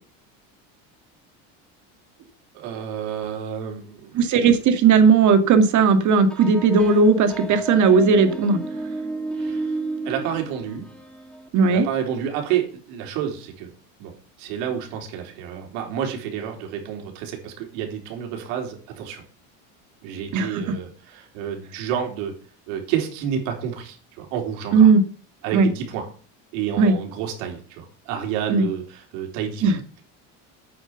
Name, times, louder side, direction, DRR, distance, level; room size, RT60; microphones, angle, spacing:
voice 1, 2.5-4.3 9.4-9.8 10.0-10.8 11.7-13.7 14.0-14.1 14.4-19.2 20.0-22.3 22.7-24.9 25.4-26.1 26.5-29.7, right 9 dB, 90° right, 3 dB, 3.9 m, -29 dB
voice 2, 4.1-8.6 11.5-11.9 20.3-20.6 24.7-25.0 25.5-25.7 26.8-26.9 28.5-28.7 29.6-29.8, right 5 dB, 50° right, 8 dB, 2.2 m, -16 dB
sound 1, 6.3-11.5, right 2 dB, ahead, 1.7 m, -32 dB
9.0 x 7.8 x 7.2 m, 0.42 s
cardioid pair, 130°, 37 cm